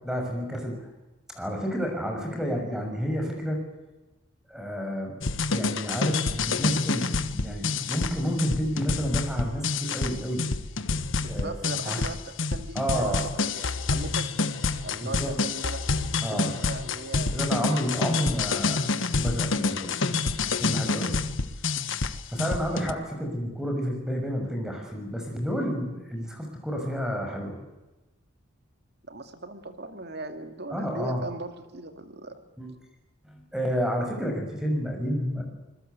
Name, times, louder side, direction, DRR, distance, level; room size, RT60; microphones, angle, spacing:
voice 1, 0.0-0.8 1.3-3.6 4.5-5.1 5.5-10.4 11.2-11.5 11.8-12.0 12.7-13.3 15.0-15.3 16.2-16.6 17.2-18.9 19.2-21.2 22.3-27.6 30.7-31.3 32.6-32.7 33.2-35.4, equal, 5° right, 2 dB, 6.3 m, -30 dB
sound 1, 5.2-22.9, left 4 dB, 70° left, 1.3 m, -28 dB
voice 2, 11.2-14.3 14.8-16.1 16.3-17.4 29.1-32.4, right 2 dB, 55° right, 7 dB, 2.4 m, -39 dB
26.0 x 21.5 x 8.2 m, 1.1 s
head